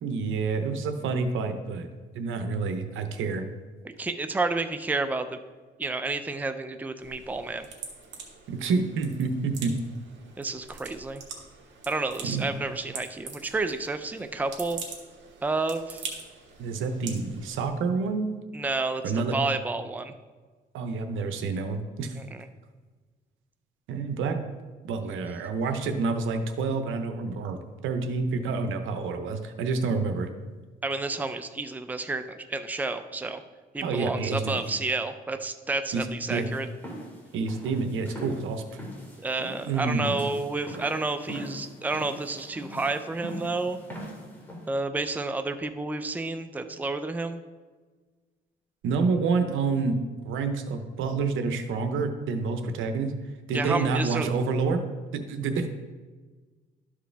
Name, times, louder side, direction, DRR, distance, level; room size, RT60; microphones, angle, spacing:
voice 1, 0.0-1.9 2.1-3.5 8.5-9.8 12.2-12.5 16.6-18.4 19.0-19.4 20.7-22.2 23.9-24.4 24.8-30.3 33.8-34.7 35.9-36.5 37.3-38.8 39.7-40.1 48.8-50.0 50.2-53.1 53.5-54.9 55.1-55.7, right 4 dB, 80° right, 7 dB, 0.9 m, -28 dB
voice 2, 3.8-5.4 5.8-7.7 10.4-11.2 11.9-14.8 15.4-16.0 18.5-19.0 19.3-20.1 22.3-22.5 30.8-33.4 33.7-36.7 39.2-43.8 44.7-47.4 53.5-54.3, right 3 dB, 10° right, 8 dB, 0.5 m, -30 dB
sound 1, 7.0-17.7, right 5 dB, 65° right, 1.7 m, -44 dB
sound 2, 36.3-44.7, equal, 10° left, 2.4 m, -42 dB
12.0 x 4.9 x 3.4 m, 1.4 s
cardioid pair, 90°, 20 cm